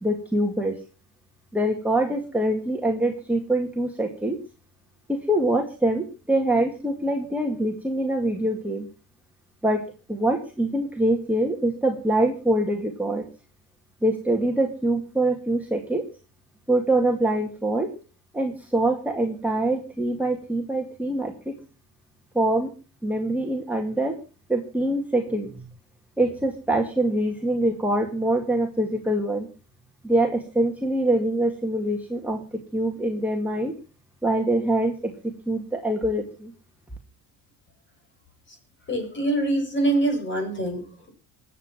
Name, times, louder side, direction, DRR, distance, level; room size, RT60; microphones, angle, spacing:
voice 1, 0.0-0.8 1.5-4.4 5.1-8.9 9.6-9.8 10.1-13.2 14.0-16.1 16.7-17.9 18.3-21.6 22.3-22.7 23.0-24.2 24.5-25.6 26.2-29.5 30.0-32.4 32.7-33.7 34.2-35.1 35.5-36.5, right 1 dB, 5° right, 0 dB, 2.1 m, -24 dB
voice 2, 38.9-41.1, right 2 dB, 35° left, 3 dB, 7.3 m, -25 dB
21.5 x 8.4 x 6.0 m, 0.36 s
cardioid pair, 135°, 34 cm